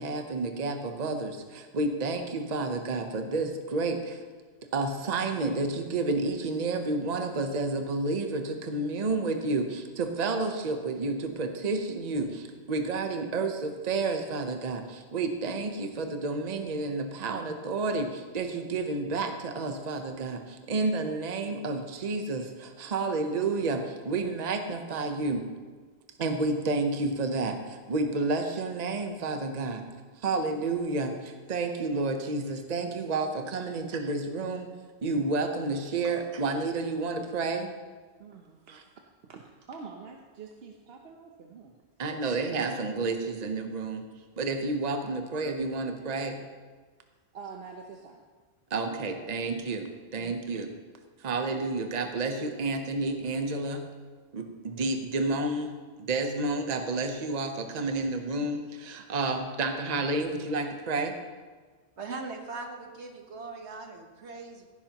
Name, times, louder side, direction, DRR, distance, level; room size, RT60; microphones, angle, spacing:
voice 1, 0.0-4.2 4.7-12.4 12.7-14.8 15.1-18.1 18.3-20.4 20.7-25.4 26.2-27.6 27.9-29.8 30.2-31.1 31.5-34.7 35.0-37.7 38.7-38.8 42.0-44.0 44.4-46.4 48.7-50.7 51.2-53.8 54.3-55.7 56.0-61.1, right 3 dB, 40° right, 5 dB, 0.9 m, -30 dB
voice 2, 38.2-38.8 39.2-41.8 47.3-48.2 50.2-50.4, right 5 dB, 65° right, 2 dB, 1.0 m, -46 dB
voice 3, 62.0-64.7, right 3 dB, 80° right, 3 dB, 1.5 m, -40 dB
16.0 x 10.0 x 2.9 m, 1.4 s
omnidirectional pair, 1.1 m